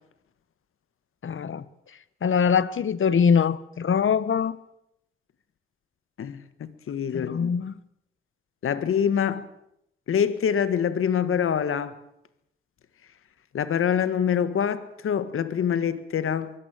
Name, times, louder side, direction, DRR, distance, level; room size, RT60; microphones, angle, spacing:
voice 1, 1.2-1.6 2.2-4.6 7.1-7.7, left 6 dB, 70° left, 1.3 m, -23 dB
voice 2, 6.2-7.5 8.6-9.5 10.1-12.0 13.5-16.5, left 8 dB, 90° left, 1.7 m, -25 dB
23.0 x 16.5 x 9.0 m
cardioid pair, 65°, 21 cm